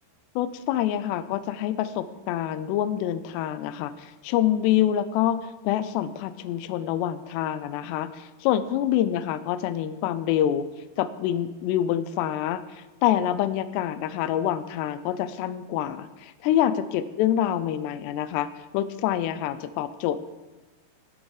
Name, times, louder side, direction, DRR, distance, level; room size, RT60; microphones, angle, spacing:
voice 1, 0.4-10.7 11.0-18.5 18.7-20.2, left 11 dB, 90° left, 13 dB, 2.7 m, -26 dB
17.5 x 6.3 x 4.9 m, 1.2 s
omnidirectional pair, 4.7 m